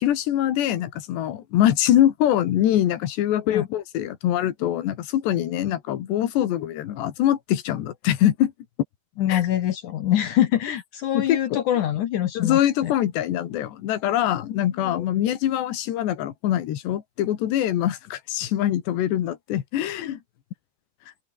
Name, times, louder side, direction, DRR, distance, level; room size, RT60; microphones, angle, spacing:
voice 1, 0.0-8.5 9.3-9.4 11.1-11.6 12.4-20.2, left 12 dB, 85° left, 4.1 m, -23 dB
voice 2, 9.2-12.9 14.5-14.6 14.8-15.0, left 11 dB, 65° left, 2.1 m, -24 dB
open air
omnidirectional pair, 4.8 m